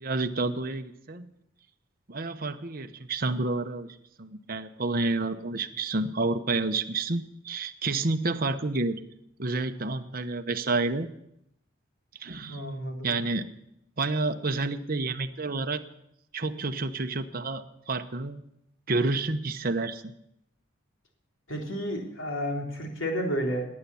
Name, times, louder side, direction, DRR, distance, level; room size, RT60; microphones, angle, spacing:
voice 1, 0.0-1.3 2.1-3.9 4.2-9.0 9.4-11.1 12.2-12.6 13.0-13.5 14.0-15.8 16.3-18.4 18.9-20.1, right 3 dB, 50° right, 8 dB, 1.0 m, -29 dB
voice 2, 12.5-13.1 21.5-23.7, equal, 85° left, 1 dB, 3.6 m, -31 dB
19.0 x 9.6 x 7.0 m, 0.79 s
head